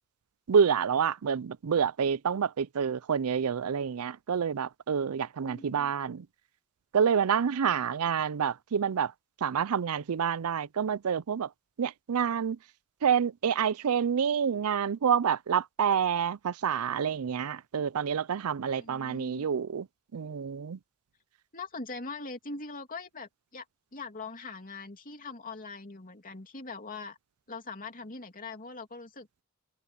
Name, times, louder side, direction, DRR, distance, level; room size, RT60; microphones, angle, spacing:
voice 1, 0.5-6.2 6.9-9.1 9.4-11.5 11.8-12.6 13.0-19.9 20.1-20.8, right 7 dB, 70° right, 0.5 m, -28 dB
voice 2, 5.5-5.9 18.7-19.5 21.5-23.6 23.9-27.2 27.5-29.3, left 3 dB, 40° left, 2.9 m, -42 dB
head